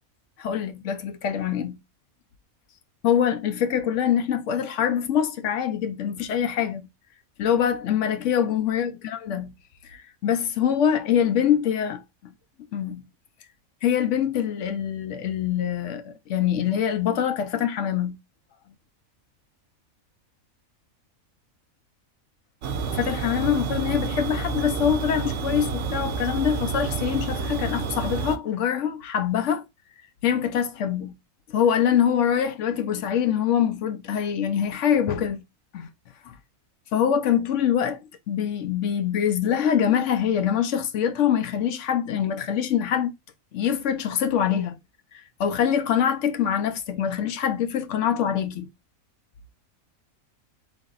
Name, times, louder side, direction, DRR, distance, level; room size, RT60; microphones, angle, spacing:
voice 1, 0.4-1.8 3.0-6.9 7.4-9.5 9.8-12.3 12.7-13.0 13.8-18.2 22.9-29.6 30.2-31.1 31.5-35.4 35.7-35.9 36.3-36.4 36.9-38.0 38.3-43.1 43.5-44.8 45.4-48.7, left 9 dB, 65° left, 0.9 m, -24 dB
sound 1, 22.6-28.4, right 5 dB, 65° right, 0.9 m, -29 dB
3.9 x 2.6 x 3.8 m
omnidirectional pair, 1.5 m